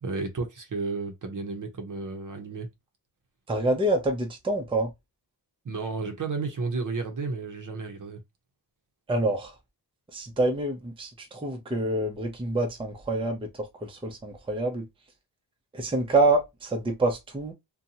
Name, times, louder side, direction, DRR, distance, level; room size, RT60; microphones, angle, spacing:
voice 1, 0.0-2.7 5.6-8.2, right 4 dB, 45° right, 0.7 m, -32 dB
voice 2, 3.5-4.9 9.1-9.5 10.1-14.9 15.7-17.5, right 2 dB, 10° right, 0.6 m, -27 dB
2.6 x 2.2 x 2.7 m
cardioid pair, 80°, 45 cm